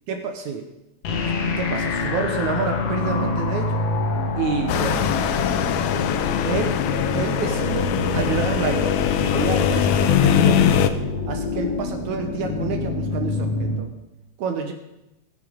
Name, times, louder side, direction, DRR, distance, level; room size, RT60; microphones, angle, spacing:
voice 1, 0.1-0.7 1.4-3.9 4.4-5.1 6.4-6.9 7.1-11.0 11.3-13.9 14.4-14.7, right 5 dB, 70° right, 5 dB, 2.4 m, -28 dB
sound 1, 1.0-13.8, left 3 dB, 60° left, 2.1 m, -26 dB
sound 2, 4.7-10.9, left 9 dB, 75° left, 2.0 m, -21 dB
19.5 x 7.8 x 5.1 m, 0.94 s
omnidirectional pair, 3.7 m